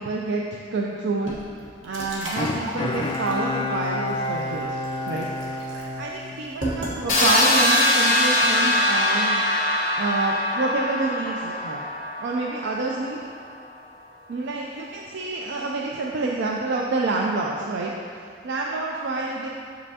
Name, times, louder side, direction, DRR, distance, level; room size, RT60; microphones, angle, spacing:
voice 1, 0.0-1.4 1.8-4.8 5.1-5.3 6.0-9.4 10.0-11.8 12.2-13.2 14.3-19.5, right 3 dB, 65° right, -1 dB, 0.4 m, -28 dB
sound 1, 1.2-7.6, right 1 dB, 90° right, 1.2 m, -35 dB
Bowed string instrument, 2.4-6.9 7.3-7.4, left 2 dB, 25° left, 0.3 m, -29 dB
sound 2, 7.1-12.9, left 1 dB, 45° left, 1.3 m, -22 dB
7.1 x 5.2 x 2.8 m, 2.3 s
head